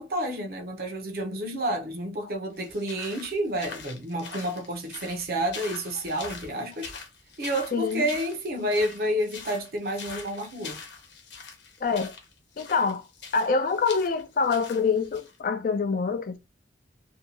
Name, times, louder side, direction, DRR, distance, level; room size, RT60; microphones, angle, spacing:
voice 1, 0.0-6.9 7.4-10.8, right 1 dB, 55° right, 0.7 m, -30 dB
sound 1, 2.6-15.4, left 5 dB, 75° left, 0.8 m, -43 dB
voice 2, 7.7-8.1 11.8-12.1 12.6-13.1 13.3-16.4, left 5 dB, 50° left, 0.3 m, -25 dB
2.6 x 2.2 x 2.8 m
head